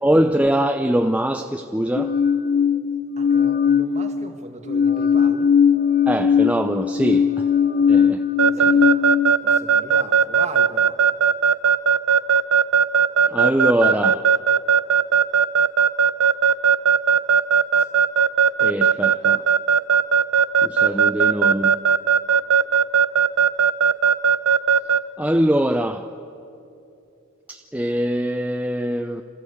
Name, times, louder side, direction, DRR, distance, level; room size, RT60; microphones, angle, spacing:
voice 1, 0.0-2.1 6.1-7.5 7.9-8.7 13.3-14.3 18.6-19.4 20.6-21.8 25.2-26.1 27.5-29.2, right 1 dB, 5° right, 0.5 m, -22 dB
sound 1, 2.0-4.3 4.7-9.3, left 7 dB, 45° left, 0.5 m, -19 dB
voice 2, 3.2-5.5 8.4-9.0 9.4-11.0, right 3 dB, 35° right, 1.7 m, -37 dB
Keyboard (musical) / Alarm, 8.4-25.0, right 7 dB, 90° right, 0.7 m, -16 dB
26.5 x 14.5 x 8.1 m
head